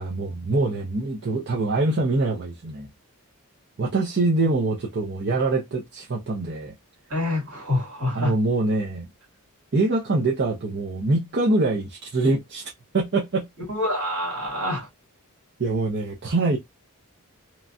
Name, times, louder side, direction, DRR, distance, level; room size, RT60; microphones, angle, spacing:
voice 1, 0.0-2.9 3.8-6.7 8.1-9.1 9.7-13.5 15.6-16.6, right 2 dB, 50° right, 0.6 m, -24 dB
voice 2, 7.1-8.4 13.7-14.9, left 1 dB, 70° right, 2.0 m, -26 dB
3.0 x 2.2 x 2.5 m
head